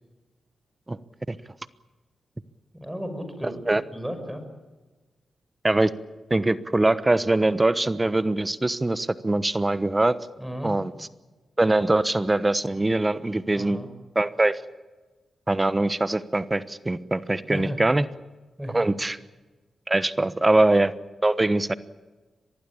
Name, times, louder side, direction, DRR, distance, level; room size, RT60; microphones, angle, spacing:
voice 1, 2.7-3.6 3.9-4.4 10.4-10.7 13.5-13.9 17.5-17.8 18.6-18.8, equal, 5° right, 7 dB, 6.2 m, -34 dB
voice 2, 3.4-3.8 5.6-5.9 6.3-10.2 10.6-11.1 11.6-13.8 14.1-14.6 15.5-18.1 18.7-19.2 19.9-20.9 21.2-21.7, right 2 dB, 25° right, 14 dB, 1.1 m, -22 dB
24.0 x 19.5 x 8.7 m, 1.2 s
supercardioid pair, 50°, 0 cm